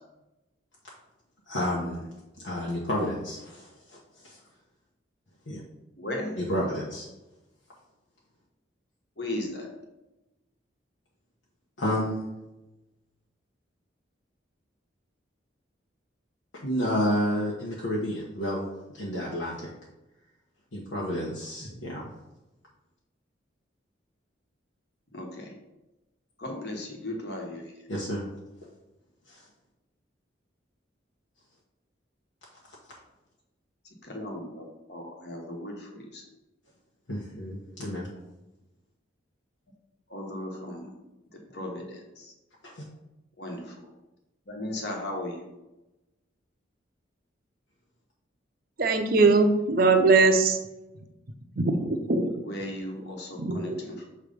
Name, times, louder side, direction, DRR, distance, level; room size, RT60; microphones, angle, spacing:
voice 1, 1.5-2.1 2.4-4.4 5.5-5.6 6.4-7.1 11.8-12.3 16.6-18.6 18.9-19.7 20.7-22.0 27.9-28.3 29.3-29.4 37.1-38.1 42.6-42.8, equal, 85° left, -4 dB, 1.1 m, -30 dB
voice 2, 6.0-6.4 9.2-9.7 25.1-25.5 26.4-27.6 34.0-36.2 40.1-40.9 41.3-42.3 43.4-43.8 44.5-45.4 52.4-54.1, left 1 dB, 55° left, 1 dB, 1.3 m, -36 dB
voice 3, 48.8-50.6 51.6-52.3 53.4-53.8, right 3 dB, 50° right, 6 dB, 0.7 m, -21 dB
6.7 x 3.2 x 5.1 m, 0.98 s
head